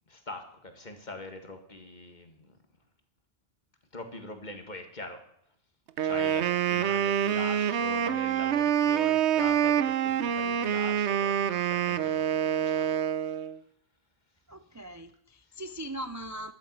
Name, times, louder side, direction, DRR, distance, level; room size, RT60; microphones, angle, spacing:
voice 1, 0.1-2.6 3.9-5.2 6.0-12.9, left 2 dB, 40° left, 6 dB, 1.9 m, -43 dB
Wind instrument woodwind instrument, 6.0-13.6, right 9 dB, 80° right, 1.0 m, -26 dB
voice 2, 14.5-16.5, right 1 dB, 25° right, 10 dB, 0.4 m, -40 dB
11.5 x 9.0 x 8.0 m, 0.71 s
omnidirectional pair, 1.2 m